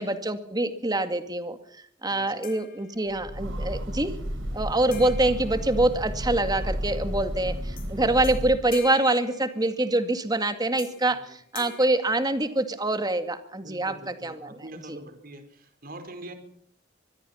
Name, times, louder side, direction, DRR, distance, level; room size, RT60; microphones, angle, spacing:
voice 1, 0.0-1.6 2.0-4.1 4.5-14.5 14.9-15.0, right 2 dB, 20° right, 8 dB, 2.1 m, -25 dB
voice 2, 2.1-2.5 5.0-5.1 11.1-11.3 13.6-16.3, right 1 dB, 50° right, 8 dB, 4.7 m, -44 dB
sound 1, 2.4-3.4 4.9-6.5 7.8-7.9 8.2-10.1 10.8-11.2 11.5-13.0, left 8 dB, 50° left, 4.4 m, -46 dB
Train, 3.1-8.8, equal, 80° right, 3.8 m, -32 dB
25.5 x 21.0 x 5.7 m, 0.65 s
head